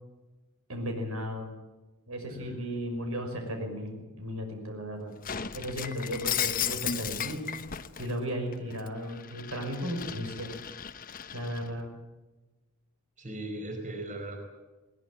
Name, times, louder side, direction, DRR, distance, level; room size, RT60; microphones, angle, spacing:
voice 1, 0.7-1.5 2.1-5.1 5.5-7.5 8.0-10.6 11.3-11.9, equal, 75° right, 4 dB, 5.8 m, -35 dB
Shatter, 5.2-8.1 8.5-11.7, left 8 dB, 40° left, 1.0 m, -35 dB
voice 2, 13.2-14.4, right 1 dB, 35° right, 3 dB, 4.9 m, -38 dB
21.0 x 19.5 x 9.2 m, 1.1 s
head